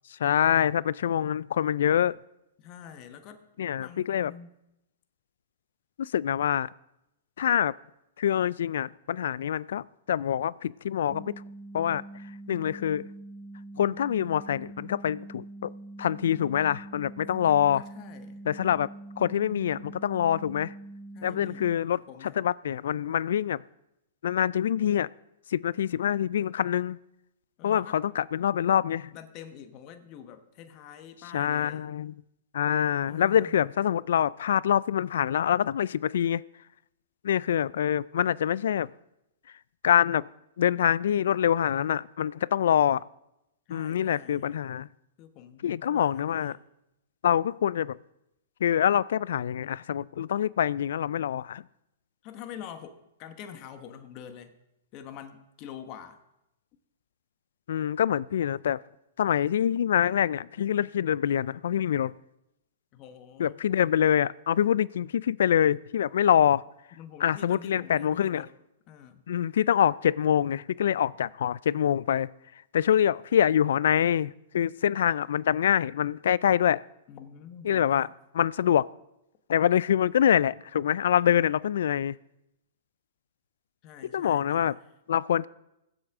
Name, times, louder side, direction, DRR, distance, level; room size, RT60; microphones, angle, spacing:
voice 1, 0.2-2.2 3.6-4.3 6.0-6.7 7.4-7.7 8.2-11.3 11.7-12.0 12.5-13.0 13.8-15.7 16.0-17.8 18.5-18.9 19.2-20.7 21.2-22.0 22.4-23.6 24.2-25.1 25.5-27.0 27.6-29.1 31.3-32.1 32.5-36.4 37.2-38.9 39.8-40.2 40.6-43.0 43.7-44.9 45.6-46.6 47.2-48.0 48.6-51.6 57.7-58.8 59.2-62.1 63.4-66.6 67.2-68.4 69.3-72.3 72.7-76.8 77.6-78.1 78.3-78.8 79.5-82.2 84.1-84.7 85.1-85.5, left 9 dB, 70° left, 23 dB, 0.3 m, -25 dB
voice 2, 2.6-4.5 17.7-18.4 21.1-22.4 27.6-28.0 29.1-31.9 33.0-33.5 43.7-44.5 45.2-46.6 52.2-54.5 54.9-56.2 62.9-63.6 67.0-68.5 68.9-69.2 77.1-78.2 83.8-84.8, left 9 dB, 40° left, 9 dB, 1.2 m, -46 dB
sound 1, 11.1-21.7, right 2 dB, 25° right, 1.0 m, -44 dB
22.0 x 7.9 x 3.6 m, 0.87 s
hypercardioid pair, 120°, 0 cm